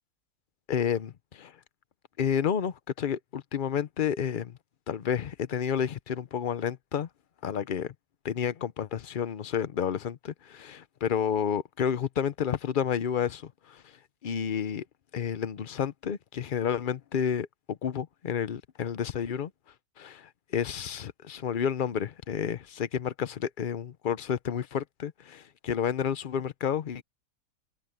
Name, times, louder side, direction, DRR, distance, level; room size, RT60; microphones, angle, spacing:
voice 1, 0.7-1.5 2.2-4.6 4.9-7.1 7.4-7.9 8.2-13.8 14.2-14.8 15.1-19.5 20.0-27.0, left 8 dB, 50° left, 0.6 m, -30 dB
open air
omnidirectional pair, 1.6 m